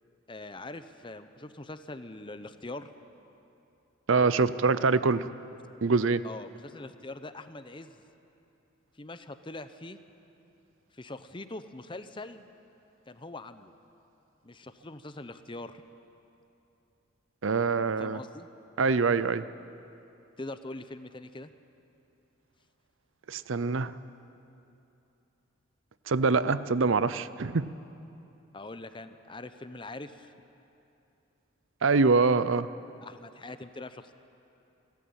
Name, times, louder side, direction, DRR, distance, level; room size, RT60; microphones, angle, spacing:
voice 1, 0.3-2.9 6.2-8.0 9.0-10.0 10.9-12.5 13.1-13.7 14.4-15.8 18.0-18.5 20.4-21.5 28.5-30.3 33.0-34.1, left 2 dB, 25° left, 10 dB, 0.8 m, -42 dB
voice 2, 4.1-5.2 5.8-6.2 17.4-18.2 18.8-19.4 23.3-23.9 26.1-27.7 31.8-32.7, right 4 dB, 75° right, 15 dB, 0.6 m, -24 dB
29.5 x 13.0 x 8.8 m, 2.8 s
head